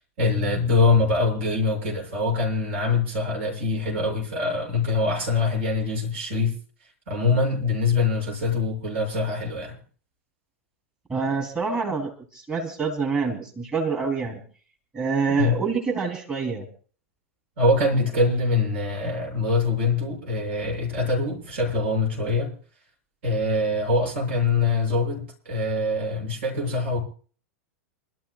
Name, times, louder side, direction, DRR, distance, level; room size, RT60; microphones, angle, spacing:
voice 1, 0.2-6.6 7.1-9.8 15.3-15.6 17.6-22.5 23.2-27.0, left 3 dB, 60° right, 7.2 m, -24 dB
voice 2, 11.1-14.4 14.9-16.7, right 5 dB, 20° right, 3.2 m, -26 dB
28.5 x 13.0 x 2.4 m
figure-of-eight pair, 95°, 7 cm